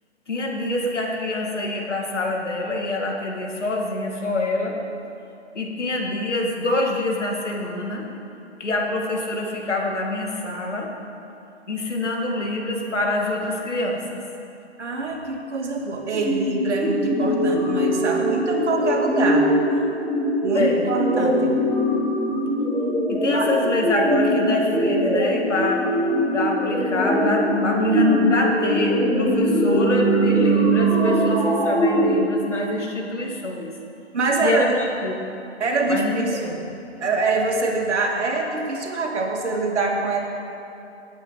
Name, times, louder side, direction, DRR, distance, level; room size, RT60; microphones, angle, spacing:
voice 1, 0.3-4.8 5.5-8.1 8.6-10.9 11.7-14.2 20.5-20.8 23.1-25.8 26.3-33.7 34.4-35.2 35.9-36.4, left 2 dB, 90° left, 0 dB, 2.3 m, -26 dB
voice 2, 14.8-19.5 20.4-21.5 23.3-23.5 34.1-34.7 35.6-36.6 37.0-40.2, right 3 dB, 75° right, 0 dB, 2.3 m, -24 dB
sound 1, 16.1-32.2, equal, ahead, 0.9 m, -21 dB
18.5 x 8.4 x 4.0 m, 2.7 s
hypercardioid pair, 145°, 35 cm